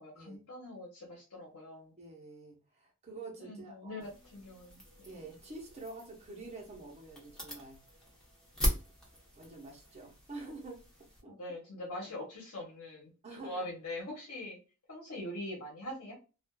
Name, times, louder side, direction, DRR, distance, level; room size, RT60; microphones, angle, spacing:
voice 1, 0.0-1.9 3.4-5.2 11.2-14.6 14.9-16.2, left 1 dB, 80° left, -2 dB, 1.1 m, -43 dB
voice 2, 2.0-4.1 5.1-7.8 9.4-10.8 11.2-11.3 13.2-13.7, right 2 dB, 30° right, -1 dB, 0.9 m, -47 dB
sound 1, 4.0-11.2, equal, 5° left, 0.9 m, -40 dB
2.5 x 2.4 x 2.3 m, 0.32 s
head